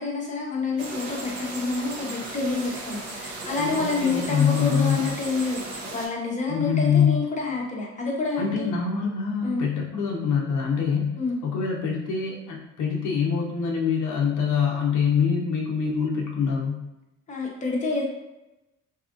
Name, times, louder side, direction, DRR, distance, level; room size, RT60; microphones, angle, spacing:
voice 1, 0.0-8.7 9.4-9.6 11.2-11.4 17.3-18.0, left 3 dB, 25° left, -2 dB, 0.7 m, -28 dB
sound 1, 0.8-6.1, right 2 dB, 60° right, 0.7 m, -36 dB
voice 2, 3.6-5.1 6.5-7.2 8.4-16.8, left 6 dB, 75° left, -1 dB, 0.6 m, -25 dB
2.7 x 2.4 x 2.4 m, 0.96 s
cardioid pair, 90°, 30 cm